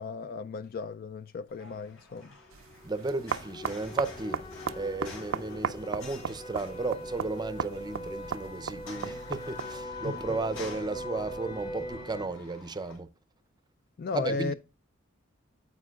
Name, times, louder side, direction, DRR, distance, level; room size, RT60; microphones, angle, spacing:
voice 1, 0.0-2.3 10.0-10.2 14.0-14.5, left 4 dB, 45° left, 0.3 m, -35 dB
sound 1, 1.5-13.0, left 2 dB, 70° left, 3.8 m, -50 dB
sound 2, 2.5-12.3, left 1 dB, 20° left, 0.8 m, -41 dB
sound 3, 2.5-9.9, right 7 dB, 75° right, 0.5 m, -37 dB
voice 2, 2.8-4.4 4.7-13.1 14.1-14.5, right 3 dB, 20° right, 0.5 m, -34 dB
9.4 x 8.0 x 2.4 m
head